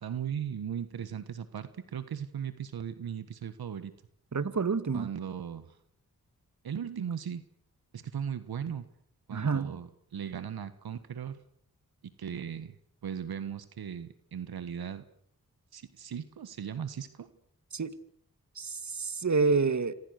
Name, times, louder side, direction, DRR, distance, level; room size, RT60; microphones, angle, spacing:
voice 1, 0.0-3.9 4.9-5.8 6.6-7.4 7.9-8.8 9.3-11.4 12.0-12.8 13.0-15.0 15.7-17.3, right 8 dB, 90° right, 12 dB, 1.5 m, -37 dB
voice 2, 4.3-5.1 9.3-9.7 17.7-17.9 18.6-19.9, right 4 dB, 50° right, 13 dB, 2.0 m, -28 dB
28.0 x 24.5 x 6.7 m, 0.68 s
cardioid pair, 50°, 36 cm